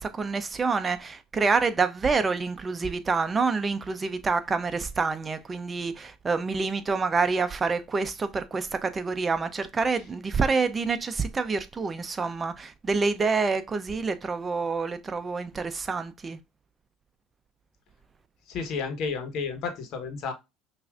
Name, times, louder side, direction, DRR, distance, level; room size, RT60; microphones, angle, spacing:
voice 1, 0.0-16.4, right 4 dB, 25° right, 0.7 m, -27 dB
voice 2, 18.5-20.3, left 5 dB, 60° left, 1.2 m, -31 dB
5.6 x 2.6 x 2.4 m
supercardioid pair, 80°, 0 cm